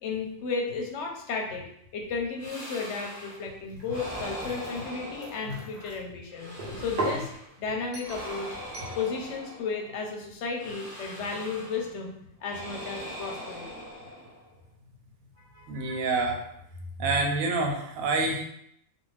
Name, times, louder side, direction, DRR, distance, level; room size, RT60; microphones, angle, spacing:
voice 1, 0.0-1.7 1.9-7.3 7.6-8.6 9.0-13.8 15.5-15.6, left 4 dB, 70° left, 1 dB, 0.8 m, -34 dB
sound 1, 2.4-3.5 3.9-5.9 6.3-7.5 8.0-10.0 10.5-12.0 12.4-14.6, equal, 20° right, 0.9 m, -41 dB
sound 2, 3.7-6.0 6.6-7.3 7.9-8.3 8.7-9.0, right 2 dB, 50° right, 0.7 m, -37 dB
voice 2, 15.7-16.4 17.0-18.5, right 3 dB, 85° right, 2 dB, 1.0 m, -27 dB
2.5 x 2.2 x 3.2 m, 0.73 s
omnidirectional pair, 1.4 m